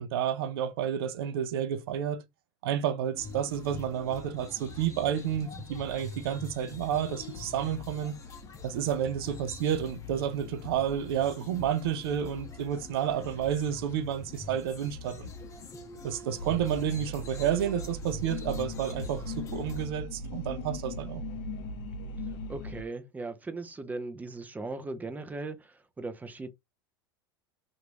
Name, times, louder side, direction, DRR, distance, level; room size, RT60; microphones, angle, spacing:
voice 1, 0.0-2.2 2.6-8.1 8.6-15.3 16.0-21.2, right 9 dB, 75° right, 0.6 m, -30 dB
sound 1, 3.1-19.9, left 4 dB, 25° left, 1.0 m, -44 dB
sound 2, 16.4-22.8, left 1 dB, 55° left, 0.6 m, -38 dB
voice 2, 22.5-26.5, right 3 dB, 10° right, 0.7 m, -38 dB
3.0 x 2.6 x 3.0 m
hypercardioid pair, 110°, 13 cm